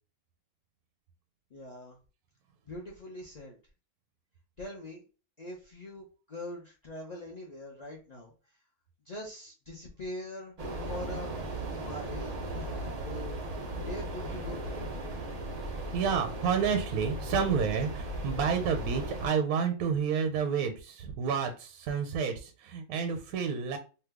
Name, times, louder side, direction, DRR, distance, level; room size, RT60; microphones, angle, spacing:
voice 1, 1.5-2.0 2.7-3.6 4.6-5.0 5.4-8.3 9.0-10.5 10.8-11.3 11.6-13.4 13.8-14.7, left 1 dB, 40° left, -2 dB, 0.6 m, -42 dB
sound 1, 10.6-19.3, right 1 dB, 55° right, 0.4 m, -37 dB
voice 2, 15.9-23.8, right 6 dB, 80° right, 6 dB, 1.0 m, -30 dB
2.8 x 2.1 x 3.4 m, 0.34 s
omnidirectional pair, 1.6 m